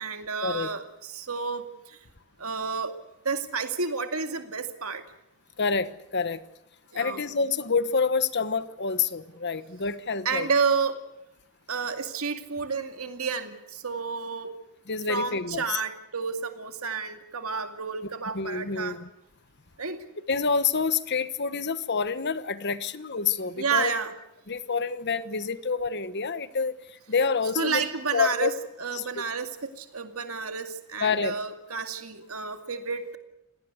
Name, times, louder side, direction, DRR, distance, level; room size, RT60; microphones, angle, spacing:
voice 1, 0.0-2.0 2.4-2.9 3.2-5.0 6.9-7.2 10.2-11.0 11.7-14.5 15.1-19.0 19.8-20.0 23.6-24.1 27.6-28.5 28.8-33.2, right 5 dB, 70° right, 7 dB, 2.3 m, -30 dB
voice 2, 5.6-6.4 6.9-10.5 14.9-15.8 18.3-19.1 20.3-23.9 24.5-27.8 28.1-28.5 28.9-29.2 31.0-31.3, left 5 dB, 50° left, 14 dB, 1.2 m, -27 dB
27.5 x 18.5 x 8.2 m, 0.85 s
head